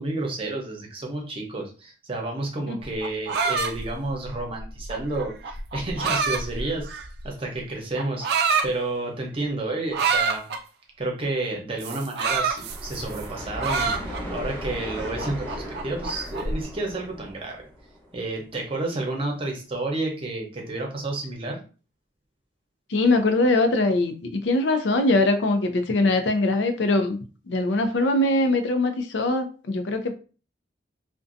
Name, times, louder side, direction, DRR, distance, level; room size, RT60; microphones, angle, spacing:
voice 1, 0.0-6.9 7.2-8.3 8.6-10.5 11.0-14.0 14.3-17.6 18.1-21.6, right 2 dB, 30° right, 0 dB, 0.7 m, -30 dB
sound 1, 2.8-7.3 8.0-8.7 9.9-10.6 11.8-13.2 13.6-14.4 14.9-16.6, right 5 dB, 60° right, 0.3 m, -27 dB
sound 2, 12.5-18.3, equal, 15° left, 0.8 m, -37 dB
voice 2, 22.9-27.2 27.5-30.1, left 2 dB, 90° left, 7 dB, 0.5 m, -22 dB
2.5 x 2.1 x 2.5 m, 0.35 s
head